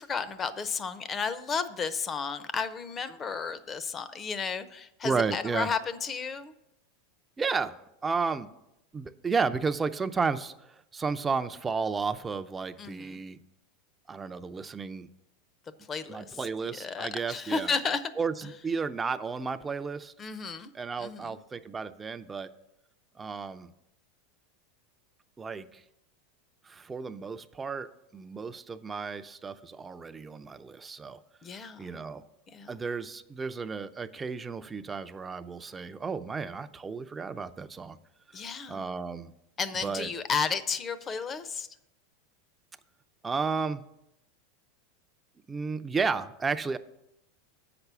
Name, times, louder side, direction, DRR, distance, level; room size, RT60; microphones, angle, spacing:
voice 1, 0.0-6.5 12.8-13.2 15.9-16.4 16.8-18.1 20.2-20.7 21.0-21.4 31.4-32.0 32.5-32.7 38.3-38.8 39.6-41.7, left 5 dB, 25° left, 14 dB, 0.7 m, -33 dB
voice 2, 5.0-5.7 7.4-8.5 8.9-13.4 14.1-15.1 16.1-17.7 18.2-20.1 20.7-22.5 23.2-23.7 25.4-25.8 26.6-31.2 31.8-32.2 32.7-38.0 38.7-39.3 39.7-40.1 43.2-43.8 45.5-46.8, right 5 dB, 20° right, 11 dB, 0.5 m, -33 dB
7.9 x 6.0 x 6.8 m, 0.84 s
hypercardioid pair, 110°, 0 cm